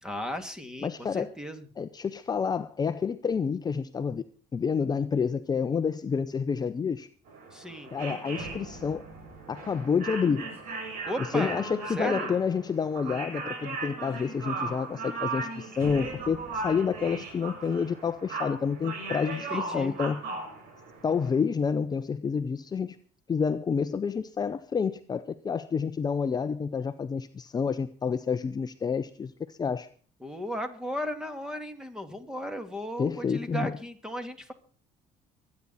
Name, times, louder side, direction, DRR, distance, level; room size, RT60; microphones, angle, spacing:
voice 1, 0.0-1.7 7.5-7.9 11.1-11.6 12.0-12.3 19.3-20.0 30.2-34.5, equal, 5° right, 2.6 m, -35 dB
voice 2, 0.8-1.3 1.8-4.2 4.5-7.1 7.9-9.0 9.5-10.5 11.3-20.2 21.0-23.0 23.3-29.9 33.0-33.7, left 6 dB, 30° left, 0.7 m, -29 dB
sound 1, 7.3-21.4, right 3 dB, 80° right, 6.8 m, -37 dB
24.5 x 9.8 x 4.2 m
cardioid pair, 95°, 14 cm